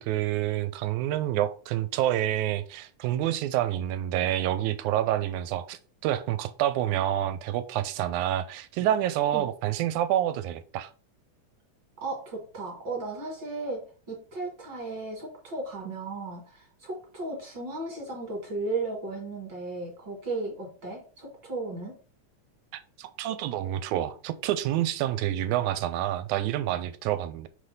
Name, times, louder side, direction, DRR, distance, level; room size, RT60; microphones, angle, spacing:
voice 1, 0.0-10.9 23.0-27.5, right 12 dB, 80° right, 13 dB, 1.9 m, -28 dB
voice 2, 12.0-21.9, right 3 dB, 45° right, 0 dB, 2.0 m, -35 dB
5.9 x 3.4 x 5.3 m, 0.39 s
omnidirectional pair, 3.6 m